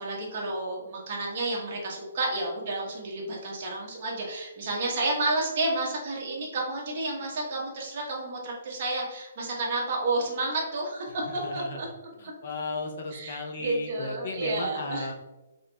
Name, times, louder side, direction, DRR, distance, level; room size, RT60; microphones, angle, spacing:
voice 1, 0.0-11.9 12.2-12.3 13.1-15.1, right 2 dB, 35° right, -2 dB, 1.0 m, -31 dB
voice 2, 11.2-11.9 12.2-15.1, left 3 dB, 45° left, 3 dB, 0.4 m, -35 dB
4.8 x 3.0 x 2.2 m, 1.1 s
hypercardioid pair, 175°, 0 cm